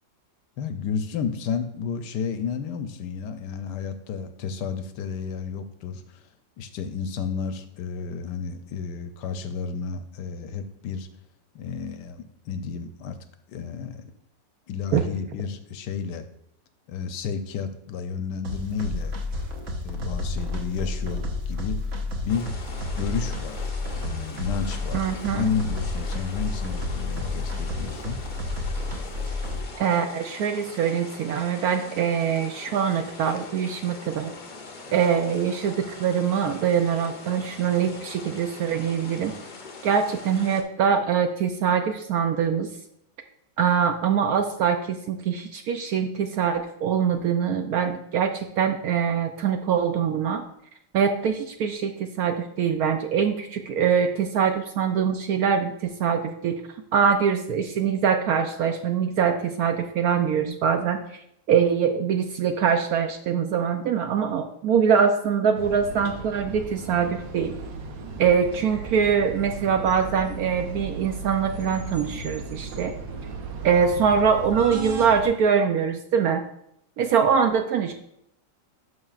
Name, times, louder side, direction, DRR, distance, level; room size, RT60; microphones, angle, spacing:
voice 1, 0.6-6.3 6.6-11.1 11.5-13.2 13.5-14.1 14.7-16.2 16.9-19.2 19.8-21.8 22.2-22.5 23.0-23.7 24.0-28.2, left 6 dB, 75° left, 9 dB, 1.2 m, -31 dB
sound 1, 18.4-29.6, left 2 dB, 50° right, 1.2 m, -31 dB
sound 2, 22.3-40.6, left 3 dB, 50° left, 0.5 m, -42 dB
voice 2, 24.9-25.5 29.8-34.3 34.9-39.3 39.8-42.7 43.6-50.4 50.9-56.6 56.9-61.0 61.5-67.6 68.2-72.9 73.6-76.4 77.0-77.9, right 7 dB, 70° right, 6 dB, 0.9 m, -23 dB
sound 3, 65.6-75.3, right 3 dB, 90° right, 1.6 m, -36 dB
11.5 x 5.8 x 2.4 m, 0.74 s
omnidirectional pair, 2.0 m